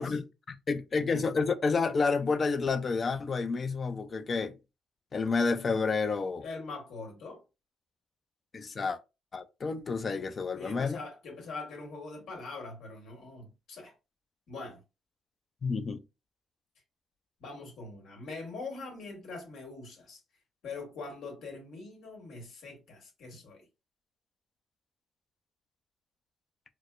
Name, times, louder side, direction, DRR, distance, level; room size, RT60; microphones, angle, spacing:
voice 1, 0.0-4.6 5.1-6.5 8.5-9.0 9.3-11.0 15.6-16.0, left 4 dB, 40° left, 0.5 m, -30 dB
voice 2, 6.4-7.4 10.5-13.9 14.5-14.8 17.4-20.2 20.6-23.6, left 3 dB, 70° left, 1.7 m, -43 dB
4.6 x 2.1 x 2.4 m
cardioid pair, 90°, 0 cm